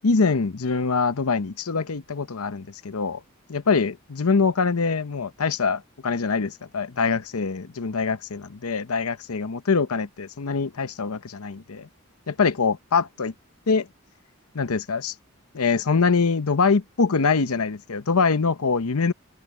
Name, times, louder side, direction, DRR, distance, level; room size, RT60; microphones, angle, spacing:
voice 1, 0.0-3.2 3.5-11.9 12.3-13.3 13.7-13.9 14.5-15.1 15.5-19.1, left 4 dB, 85° left, 0.8 m, -24 dB
open air
head